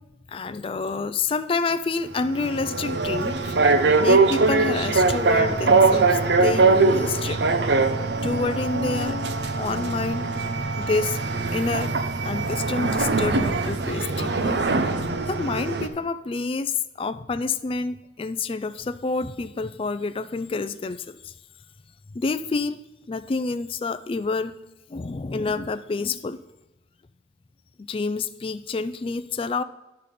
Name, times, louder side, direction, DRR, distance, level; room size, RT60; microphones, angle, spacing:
voice 1, 0.3-3.6 4.0-7.4 8.2-9.2 9.6-10.3 10.8-11.2 11.5-11.9 12.2-14.6 15.3-21.3 22.1-22.8 23.1-24.6 24.9-26.4 27.8-29.6, left 3 dB, 30° left, 12 dB, 0.4 m, -28 dB
sound 1, 2.1-15.9, right 3 dB, 65° right, 0.7 m, -22 dB
10.5 x 6.7 x 4.2 m, 0.96 s
head